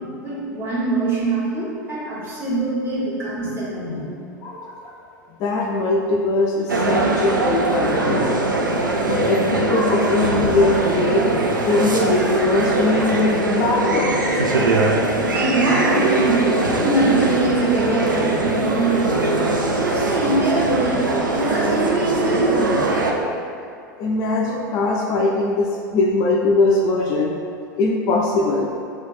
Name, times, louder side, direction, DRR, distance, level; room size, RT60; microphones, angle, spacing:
voice 1, 0.0-4.1 15.2-22.7, right 2 dB, 20° right, -8 dB, 1.4 m, -23 dB
voice 2, 4.4-4.9 5.4-8.7 9.1-11.2 11.6-14.3 16.7-16.8 24.0-27.3 27.8-28.7, left 2 dB, 35° left, -1 dB, 0.4 m, -21 dB
sound 1, 6.7-23.1, right 2 dB, 80° right, 0.4 m, -21 dB
3.3 x 3.0 x 4.1 m, 2.3 s
figure-of-eight pair, 85°, 10 cm